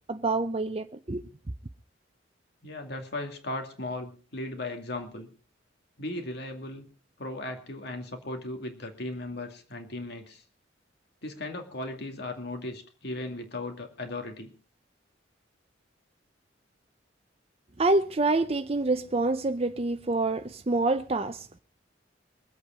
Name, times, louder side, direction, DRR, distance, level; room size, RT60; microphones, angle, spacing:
voice 1, 0.1-1.3 17.8-21.6, right 2 dB, 30° right, 0.6 m, -27 dB
voice 2, 2.6-5.3 6.0-6.9 7.2-10.4 11.2-14.5, left 2 dB, 60° left, 2.4 m, -37 dB
23.0 x 8.4 x 5.1 m
head